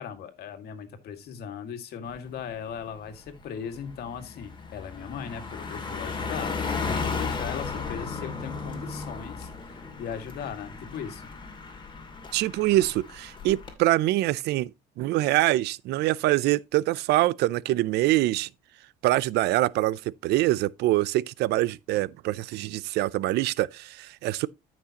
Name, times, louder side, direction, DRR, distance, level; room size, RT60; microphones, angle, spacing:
voice 1, 0.0-6.5 6.8-11.3 12.7-12.8, left 7 dB, 70° left, 2.0 m, -38 dB
Car passing by, 2.2-2.4 2.8-13.7, left 4 dB, 30° left, 2.5 m, -35 dB
voice 2, 12.3-14.7 15.0-18.5 19.0-24.5, right 16 dB, 80° right, 0.5 m, -24 dB
14.0 x 6.0 x 2.9 m
cardioid pair, 110°, 17 cm